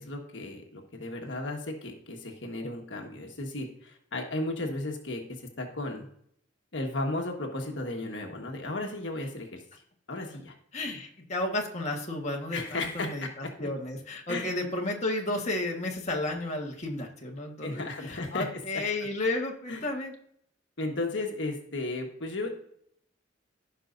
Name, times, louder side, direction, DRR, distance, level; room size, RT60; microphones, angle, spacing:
voice 1, 0.0-5.2 5.6-6.1 6.7-9.5 10.1-10.5 12.5-13.1 14.3-14.5 17.6-18.5 19.7-19.8 20.8-22.5, left 2 dB, 70° left, 2 dB, 1.4 m, -34 dB
voice 2, 10.7-20.1, left 2 dB, 35° left, 0 dB, 1.5 m, -32 dB
16.0 x 5.6 x 2.6 m, 0.68 s
head